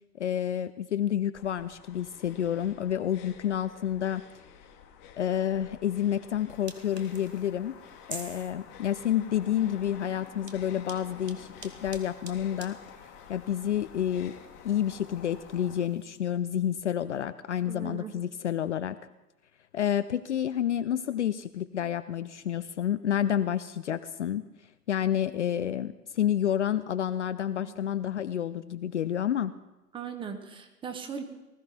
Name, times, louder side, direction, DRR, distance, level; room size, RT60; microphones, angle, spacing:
voice 1, 0.1-4.2 5.2-7.7 8.1-12.8 13.3-14.3 14.6-19.0 19.7-24.5 24.9-29.5, left 10 dB, 45° left, 12 dB, 0.6 m, -29 dB
sound 1, 1.3-15.8, left 8 dB, 30° left, 1.6 m, -50 dB
sound 2, 6.5-16.2, right 3 dB, 80° right, 1.9 m, -50 dB
voice 2, 17.7-18.1 27.6-27.8 29.9-31.2, right 6 dB, 10° right, 6 dB, 1.2 m, -38 dB
19.5 x 13.5 x 4.4 m, 1.0 s
figure-of-eight pair, 115°, 48 cm